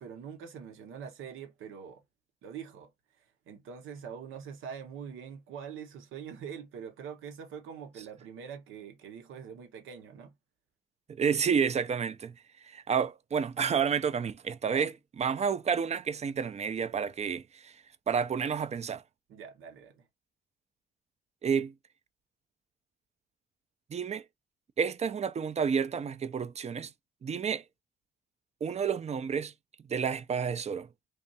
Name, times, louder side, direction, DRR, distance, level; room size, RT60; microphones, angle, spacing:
voice 1, 0.0-2.0 2.4-2.9 3.5-10.3 14.7-14.9 19.3-20.0, right 7 dB, 85° right, 1.1 m, -44 dB
voice 2, 11.1-12.3 12.6-14.9 15.2-17.7 18.1-19.0 21.4-21.7 23.9-24.2 24.8-26.9 27.2-27.6 28.6-29.5 29.9-30.9, right 6 dB, 35° right, 0.5 m, -30 dB
3.5 x 2.5 x 4.0 m
cardioid pair, 90°, 20 cm